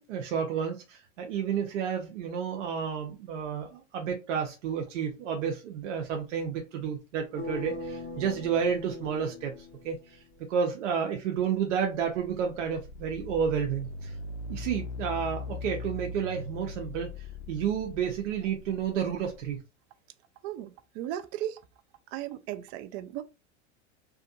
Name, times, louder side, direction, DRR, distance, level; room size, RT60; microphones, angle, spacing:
voice 1, 0.1-9.5 9.8-10.2 10.5-14.1 14.5-17.1 17.5-19.6, right 7 dB, 85° right, 0.8 m, -31 dB
sound 1, 7.4-10.4, left 3 dB, 40° left, 1.2 m, -40 dB
sound 2, 11.6-19.6, left 3 dB, 65° left, 0.5 m, -40 dB
voice 2, 20.4-21.6 22.1-23.2, right 12 dB, 45° right, 0.4 m, -36 dB
2.8 x 2.5 x 2.5 m
supercardioid pair, 115°, 36 cm